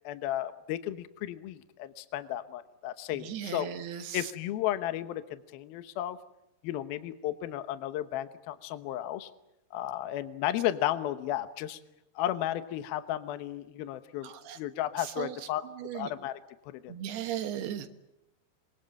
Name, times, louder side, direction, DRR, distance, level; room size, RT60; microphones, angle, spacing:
voice 1, 0.0-3.7 3.9-6.2 6.6-9.3 9.7-11.8 12.2-14.3 14.6-15.6 15.9-16.4 16.7-16.9, left 13 dB, 75° left, 11 dB, 2.8 m, -34 dB
voice 2, 3.2-4.2 14.2-14.6 15.2-15.3 15.8-16.1 16.9-17.9, right 10 dB, 80° right, 7 dB, 3.4 m, -36 dB
26.5 x 22.5 x 8.9 m, 0.87 s
omnidirectional pair, 4.7 m